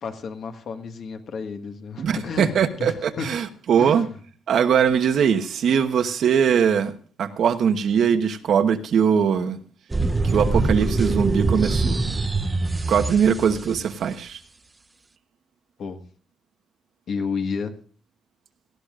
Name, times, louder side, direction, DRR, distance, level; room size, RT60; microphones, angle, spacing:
voice 1, 0.0-3.3 3.8-4.1 15.8-16.0 17.1-17.8, left 5 dB, 50° left, 6 dB, 1.6 m, -31 dB
voice 2, 2.0-4.1 4.5-6.9 7.2-9.6 10.2-12.0 12.9-14.4, right 7 dB, 55° right, 8 dB, 1.1 m, -21 dB
sound 1, 9.9-13.8, right 3 dB, 15° right, 0.7 m, -24 dB
18.5 x 13.0 x 2.5 m, 0.43 s
cardioid pair, 140°, 0 cm